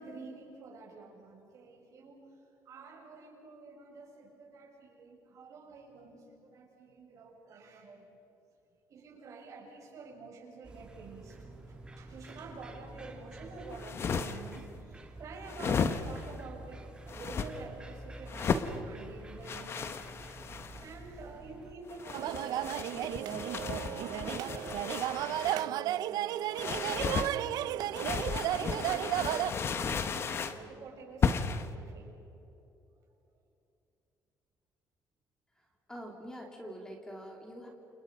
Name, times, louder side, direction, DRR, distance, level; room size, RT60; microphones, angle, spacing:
voice 1, 0.0-8.2 8.9-26.4 26.8-27.9 28.5-32.1, right 3 dB, 50° right, 0 dB, 6.7 m, -48 dB
sound 1, 10.6-21.7, right 1 dB, 15° right, 2.7 m, -49 dB
sound 2, 13.7-14.6 15.5-16.3 17.1-17.5 18.3-18.7 19.4-20.9 21.9-25.7 26.5-27.3 27.9-30.6 31.2-31.7, left 6 dB, 35° left, 1.2 m, -34 dB
sound 3, 22.1-29.5, right 13 dB, 75° right, 0.6 m, -33 dB
voice 2, 35.5-37.7, equal, 10° left, 1 dB, 3.1 m, -45 dB
30.0 x 28.5 x 5.5 m, 2.9 s
cardioid pair, 155°, 7 cm